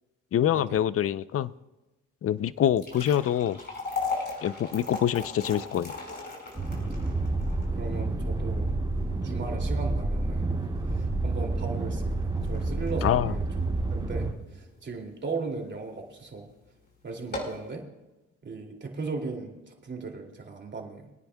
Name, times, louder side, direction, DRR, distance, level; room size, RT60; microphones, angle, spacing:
voice 1, 0.3-1.5 2.2-3.6 4.4-6.0 13.0-13.3, left 10 dB, 50° left, 17 dB, 0.5 m, -25 dB
sound 1, 2.6-14.9 15.3-15.4 16.1-16.3 16.6-16.7 17.1-17.7, left 3 dB, 35° left, 4.9 m, -38 dB
sound 2, 6.6-14.3, right 2 dB, 15° right, 2.8 m, -29 dB
voice 2, 7.7-8.7 9.2-10.5 11.2-13.4 13.9-16.5 17.0-17.9 18.4-21.1, right 4 dB, 35° right, 2 dB, 2.6 m, -37 dB
25.0 x 10.0 x 2.3 m, 1.1 s
cardioid pair, 90°, 30 cm